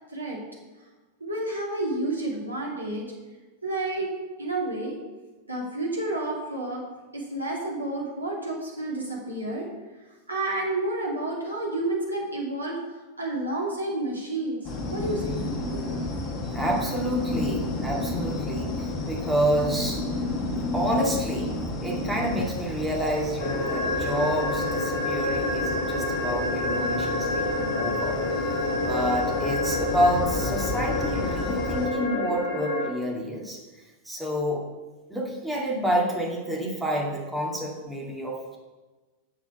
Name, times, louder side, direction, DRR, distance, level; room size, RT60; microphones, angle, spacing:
voice 1, 1.2-3.1 3.6-4.1 4.4-5.0 5.5-6.8 7.1-9.7 10.3-12.8 13.2-14.6 14.9-15.9, right 2 dB, 80° right, -2 dB, 2.4 m, -30 dB
sound 1, 14.6-31.9, left 2 dB, 30° left, 1.6 m, -32 dB
voice 2, 16.5-20.0 20.7-21.5 21.8-28.2 28.8-34.6 35.1-38.6, equal, 5° right, -3 dB, 2.3 m, -28 dB
sound 2, 23.4-32.9, left 2 dB, 55° left, 1.7 m, -28 dB
7.1 x 6.8 x 6.8 m, 1.2 s
figure-of-eight pair, 90°, 0 cm